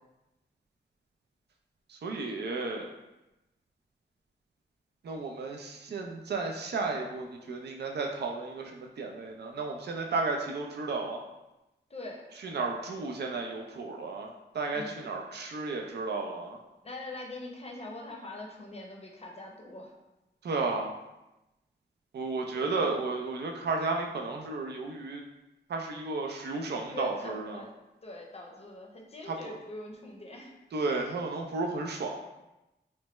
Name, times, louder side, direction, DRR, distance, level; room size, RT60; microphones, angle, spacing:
voice 1, 1.9-2.9 5.0-11.2 12.4-16.6 20.4-21.0 22.1-25.2 25.7-27.6 29.3-29.4 30.7-32.2, right 3 dB, 65° right, 2 dB, 0.4 m, -33 dB
voice 2, 11.9-12.2 14.7-15.0 16.8-19.9 22.5-22.9 26.9-27.7 28.0-30.5, left 2 dB, 35° left, 0 dB, 0.6 m, -43 dB
3.2 x 2.2 x 3.0 m, 0.97 s
wide cardioid pair, 75°, 19 cm